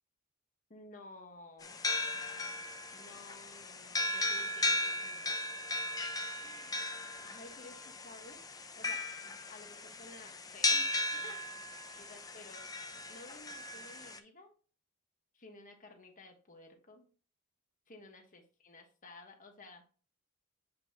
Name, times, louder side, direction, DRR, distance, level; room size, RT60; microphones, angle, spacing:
voice 1, 0.7-1.9 2.9-5.4 6.3-6.8 7.2-8.4 8.8-11.6 12.0-12.7 13.1-14.5 15.3-17.1 17.9-19.9, left 2 dB, 40° left, 4 dB, 1.3 m, -54 dB
sound 1, 1.6-14.2, left 2 dB, 15° left, 0.5 m, -36 dB
7.5 x 5.4 x 2.9 m, 0.38 s
head